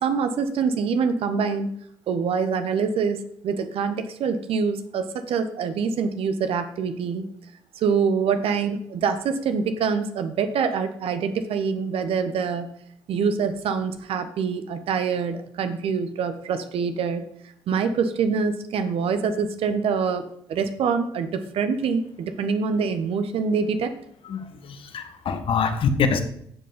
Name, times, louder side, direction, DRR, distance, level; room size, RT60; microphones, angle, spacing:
voice 1, 0.0-1.7 2.1-7.2 7.8-12.7 13.1-17.2 17.7-23.9, right 5 dB, 60° right, 9 dB, 1.3 m, -25 dB
voice 2, 24.3-26.2, left 5 dB, 55° left, 7 dB, 1.6 m, -25 dB
12.5 x 7.9 x 5.3 m, 0.69 s
hypercardioid pair, 50°, 11 cm